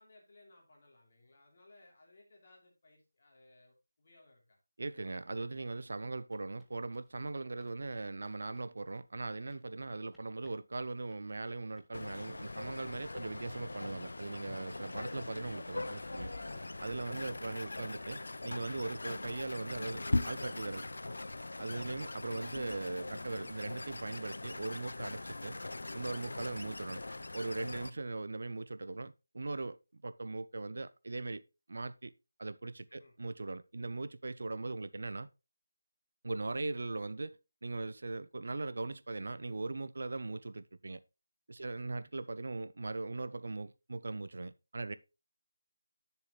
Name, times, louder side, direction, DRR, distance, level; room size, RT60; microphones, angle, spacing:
voice 1, 0.0-4.6 27.9-28.0 32.9-33.2 41.5-41.9, left 2 dB, 40° left, 3.1 m, -62 dB
voice 2, 4.8-16.3 16.8-20.9 21.6-25.6 25.9-27.0 27.3-29.8 30.0-31.4 31.7-32.1 32.4-35.3 36.2-37.4 37.6-41.0 41.5-45.0, right 3 dB, 60° right, 0.5 m, -40 dB
sound 1, 6.3-19.8, equal, ahead, 0.8 m, -71 dB
sound 2, 11.9-27.9, left 2 dB, 75° left, 0.6 m, -41 dB
9.5 x 6.9 x 3.1 m
figure-of-eight pair, 170°, 0 cm